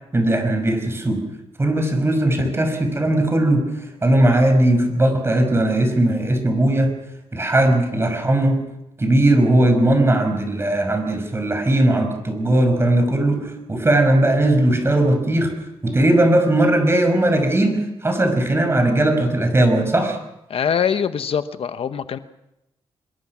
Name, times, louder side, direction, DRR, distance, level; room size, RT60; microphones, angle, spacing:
voice 1, 0.1-1.2 1.6-3.7 4.0-6.9 7.3-8.6 9.0-15.5 15.8-20.2, right 1 dB, 25° right, 6 dB, 5.8 m, -18 dB
voice 2, 20.5-22.2, left 7 dB, 60° left, 11 dB, 1.0 m, -23 dB
25.5 x 22.0 x 6.1 m, 0.87 s
cardioid pair, 95°, 11 cm